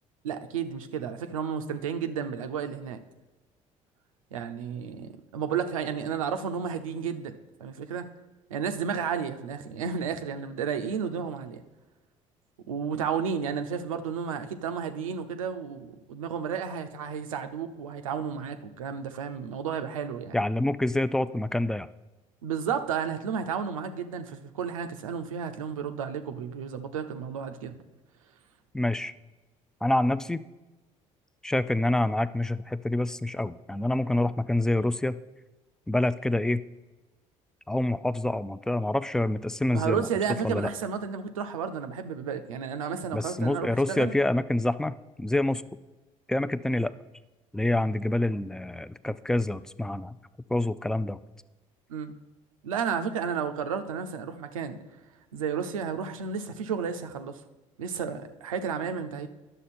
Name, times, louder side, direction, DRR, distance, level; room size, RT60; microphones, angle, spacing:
voice 1, 0.2-3.0 4.3-8.1 8.5-11.6 12.7-20.4 22.4-27.8 39.7-44.1 51.9-52.1 52.6-54.8 55.3-57.4 57.8-59.3, right 7 dB, 90° right, 8 dB, 0.6 m, -32 dB
voice 2, 20.3-21.9 28.7-29.1 29.8-30.4 31.4-35.2 35.9-36.6 37.7-40.1 40.4-40.7 43.1-45.6 46.3-46.9 47.5-50.2 50.5-51.2, left 1 dB, 5° left, 15 dB, 0.4 m, -27 dB
10.0 x 6.7 x 4.2 m, 1.1 s
hypercardioid pair, 60°, 17 cm